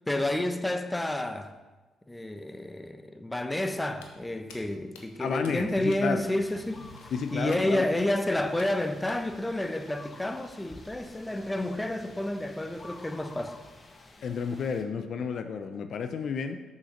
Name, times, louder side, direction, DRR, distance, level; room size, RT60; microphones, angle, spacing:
voice 1, 0.1-1.5 2.1-13.6, left 1 dB, 15° left, 0.9 m, -30 dB
Walk footsteps, 3.9-9.5, left 4 dB, 85° left, 1.1 m, -53 dB
voice 2, 5.2-6.2 7.1-7.9 14.2-16.6, left 6 dB, 60° left, 0.7 m, -31 dB
sound 1, 6.2-14.8, left 2 dB, 35° left, 1.3 m, -50 dB
7.2 x 6.3 x 6.6 m
hypercardioid pair, 50°, 0 cm